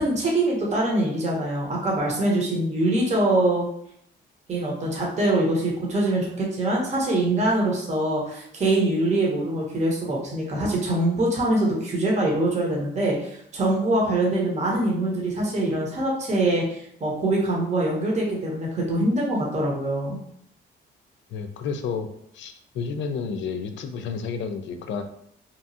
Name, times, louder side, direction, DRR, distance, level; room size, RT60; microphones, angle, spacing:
voice 1, 0.0-3.7 4.5-20.2, right 1 dB, 35° right, -2 dB, 0.8 m, -24 dB
voice 2, 21.3-22.1 22.3-25.0, left 5 dB, 70° left, 7 dB, 0.4 m, -31 dB
2.8 x 2.3 x 2.7 m, 0.70 s
cardioid pair, 90°, 20 cm